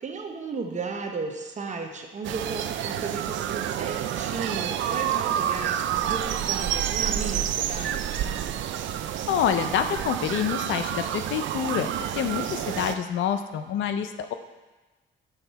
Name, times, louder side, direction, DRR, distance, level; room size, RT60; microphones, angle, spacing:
voice 1, 0.0-8.3, right 4 dB, 35° right, 3 dB, 0.9 m, -35 dB
sound 1, 2.2-13.0, right 10 dB, 70° right, 0.4 m, -29 dB
voice 2, 9.3-11.9 12.2-14.3, left 9 dB, 75° left, 8 dB, 0.5 m, -27 dB
7.0 x 4.0 x 4.5 m, 1.2 s
cardioid pair, 90°, 20 cm